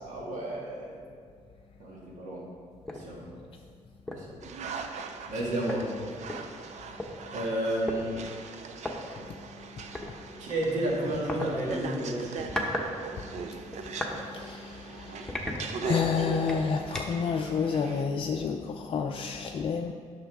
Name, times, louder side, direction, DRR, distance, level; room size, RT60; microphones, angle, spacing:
voice 1, 0.0-1.1 1.8-2.5 2.9-3.3 4.1-4.3 5.3-5.9 7.3-8.2 10.4-12.5, right 1 dB, 85° right, -3 dB, 1.8 m, -31 dB
sound 1, 2.9-3.1 3.5-3.6 4.1-4.3 5.3-5.4 5.7-7.1 7.9-8.0 8.8-8.9 9.9-10.1 11.3-11.5 12.2-12.9 13.2-14.2 14.6-14.8 15.3-16.1 16.5-17.3, left 1 dB, 5° left, 0.9 m, -35 dB
sound 2, 4.4-18.0, right 4 dB, 65° right, 0.6 m, -40 dB
voice 2, 13.7-19.9, left 6 dB, 45° left, 3 dB, 0.4 m, -30 dB
8.9 x 6.3 x 3.6 m, 2.1 s
cardioid pair, 110°, 13 cm